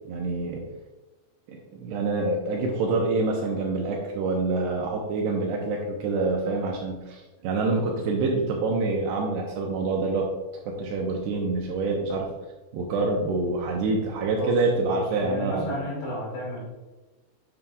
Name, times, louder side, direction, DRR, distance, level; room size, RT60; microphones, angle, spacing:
voice 1, 0.1-0.6 1.5-10.3 10.7-12.3 12.7-15.8, right 3 dB, 80° right, 0 dB, 2.6 m, -26 dB
voice 2, 14.8-16.6, left 1 dB, 70° left, -3 dB, 4.4 m, -33 dB
9.3 x 6.9 x 2.4 m, 1.2 s
omnidirectional pair, 5.7 m